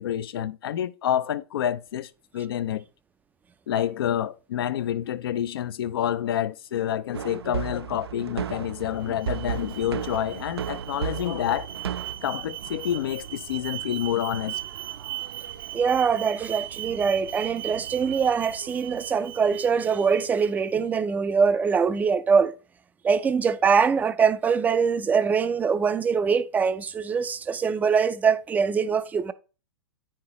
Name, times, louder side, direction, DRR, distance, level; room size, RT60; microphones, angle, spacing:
voice 1, 0.0-2.8 3.7-11.7 12.2-14.6, left 10 dB, 65° left, 0.5 m, -28 dB
sound 1, 7.1-12.1, right 9 dB, 85° right, 0.4 m, -33 dB
Alarm, 8.7-20.8, right 12 dB, 60° right, 0.7 m, -38 dB
voice 2, 15.7-22.5 23.0-29.3, right 6 dB, 10° right, 0.4 m, -23 dB
9.2 x 5.8 x 3.0 m
hypercardioid pair, 120°, 13 cm